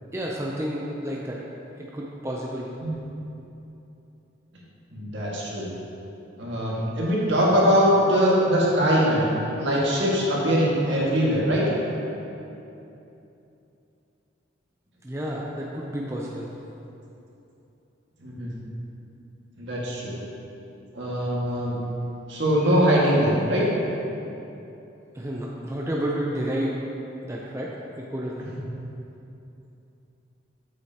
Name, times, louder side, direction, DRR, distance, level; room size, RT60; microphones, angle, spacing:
voice 1, 0.1-1.4 1.8-2.7 15.0-16.5 25.1-26.8 27.2-27.7 28.1-28.4, equal, 15° right, -3 dB, 0.5 m, -30 dB
voice 2, 4.9-5.7 6.4-9.3 9.6-11.6 18.2-18.5 19.6-20.2 20.9-21.7 22.3-23.7, equal, 70° right, -6 dB, 1.8 m, -22 dB
8.9 x 7.7 x 2.9 m, 2.9 s
head